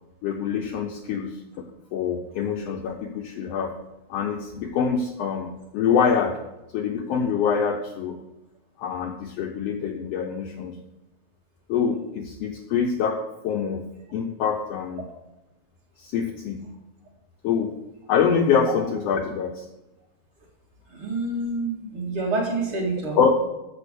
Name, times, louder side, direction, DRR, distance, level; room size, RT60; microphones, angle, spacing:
voice 1, 0.2-3.7 4.1-6.4 6.7-8.2 8.8-10.8 11.7-13.2 13.4-13.9 14.1-15.1 16.0-16.7 17.4-17.7 18.1-19.7 23.2-23.4, left 6 dB, 80° left, 4 dB, 1.4 m, -25 dB
voice 2, 20.9-23.2, right 2 dB, 50° right, -2 dB, 2.6 m, -27 dB
6.9 x 6.7 x 6.7 m, 0.98 s
omnidirectional pair, 3.3 m